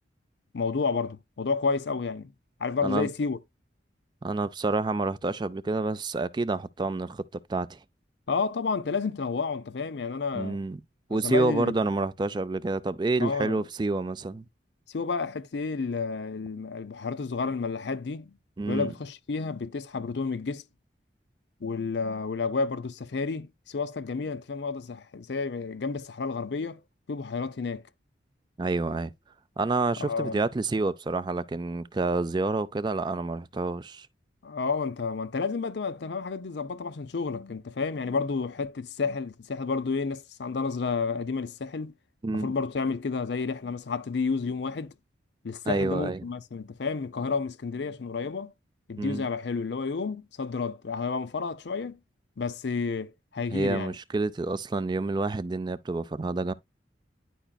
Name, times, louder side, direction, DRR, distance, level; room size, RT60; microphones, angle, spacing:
voice 1, 0.5-2.3 2.6-3.4 8.3-10.6 11.1-11.7 13.2-13.6 14.9-18.4 18.7-20.6 21.6-26.8 27.1-27.8 30.0-30.4 34.4-41.9 42.3-44.9 45.4-48.5 48.9-52.0 52.4-53.9, left 4 dB, 70° left, 0.5 m, -31 dB
voice 2, 4.2-7.2 7.5-7.8 10.3-10.8 11.1-14.4 18.6-18.9 28.6-29.1 29.6-34.1 42.2-42.5 45.7-46.2 49.0-49.2 53.5-56.5, right 3 dB, 25° right, 0.3 m, -28 dB
10.0 x 5.0 x 2.3 m
head